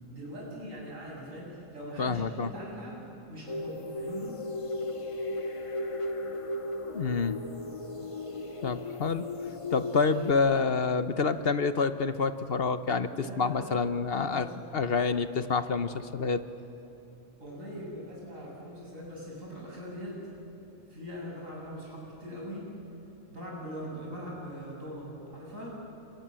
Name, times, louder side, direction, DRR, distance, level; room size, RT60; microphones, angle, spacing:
voice 1, 0.1-4.4 13.1-13.7 14.2-14.5 17.4-20.2 20.7-22.8 23.3-25.9, equal, 90° right, -3 dB, 8.3 m, -41 dB
voice 2, 2.0-2.5 6.9-7.3 8.6-9.3 9.7-14.5 14.7-16.4, left 4 dB, 50° left, 11 dB, 1.1 m, -27 dB
sound 1, 3.5-10.3, left 2 dB, 25° left, 1.1 m, -36 dB
28.5 x 25.5 x 7.6 m, 2.9 s
omnidirectional pair, 1.3 m